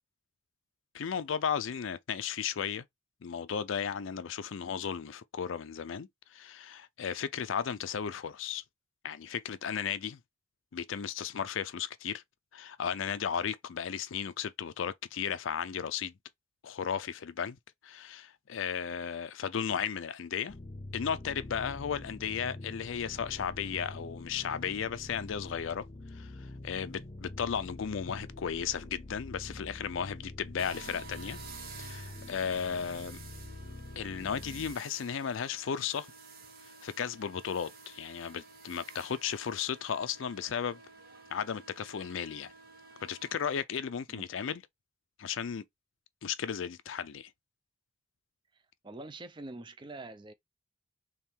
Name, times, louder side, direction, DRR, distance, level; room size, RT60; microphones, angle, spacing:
voice 1, 0.9-2.8 3.2-8.6 9.0-10.2 10.7-12.2 12.5-16.1 16.6-17.6 17.8-20.5 20.9-25.9 26.1-31.4 31.8-33.2 34.0-36.1 36.8-40.8 41.3-42.5 43.0-44.6 45.2-45.6 46.2-47.3, left 7 dB, 75° left, 0.4 m, -35 dB
sound 1, 20.5-34.8, left 2 dB, 35° left, 0.6 m, -45 dB
sound 2, 30.6-43.6, right 4 dB, 50° right, 1.1 m, -51 dB
voice 2, 48.8-50.3, right 2 dB, 25° right, 0.5 m, -44 dB
3.6 x 3.1 x 4.4 m
head